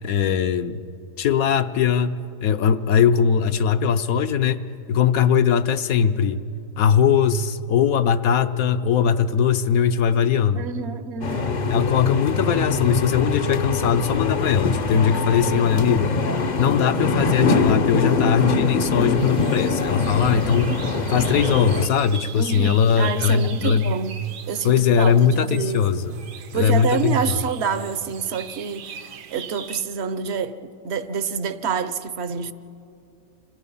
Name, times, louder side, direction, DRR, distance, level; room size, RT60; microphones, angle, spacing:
voice 1, 0.0-0.8 1.2-4.6 4.9-6.4 6.8-10.6 11.7-16.2 16.6-20.8 21.1-23.9 24.6-26.1 26.5-27.1, left 7 dB, 65° left, 1.1 m, -20 dB
voice 2, 10.5-11.6 22.3-26.0 26.5-30.6 30.8-32.5, right 6 dB, 50° right, 0.9 m, -28 dB
sound 1, 11.2-21.9, left 4 dB, 40° left, 0.6 m, -23 dB
sound 2, 19.2-29.8, right 7 dB, 80° right, 1.6 m, -40 dB
29.5 x 26.5 x 5.6 m
omnidirectional pair, 1.8 m